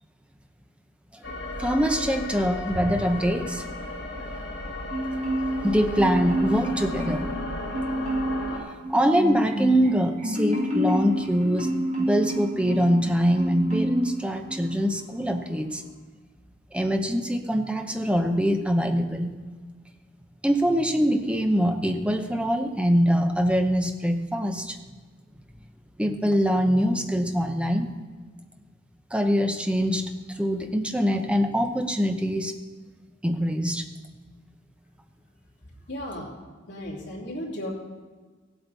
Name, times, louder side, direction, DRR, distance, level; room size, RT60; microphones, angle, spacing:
sound 1, 1.2-8.6, left 2 dB, 80° left, 3.0 m, -35 dB
voice 1, 1.6-3.7 5.6-7.3 8.9-11.7 12.0-15.8 16.7-19.4 20.4-24.8 26.0-27.9 29.1-32.5 33.2-33.8, equal, 5° right, 5 dB, 0.8 m, -24 dB
Marimba xylophone, 4.9-5.7 5.9-7.4 7.7-8.4 8.8-13.0 13.4-14.1 14.5-14.7, equal, 40° right, 2.2 m, -28 dB
voice 2, 35.9-36.4 36.7-37.7, equal, 65° left, -3 dB, 2.9 m, -35 dB
16.5 x 8.0 x 4.1 m, 1.4 s
head